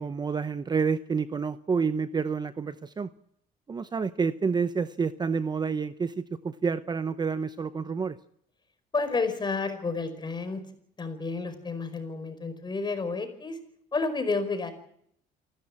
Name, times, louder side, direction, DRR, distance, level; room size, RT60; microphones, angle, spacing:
voice 1, 0.0-3.1 3.7-8.2, right 5 dB, 25° right, 13 dB, 0.8 m, -29 dB
voice 2, 8.9-10.6 11.0-13.6 13.9-14.7, left 4 dB, 25° left, 9 dB, 5.1 m, -30 dB
28.5 x 12.5 x 8.7 m, 0.70 s
cardioid pair, 110°, 17 cm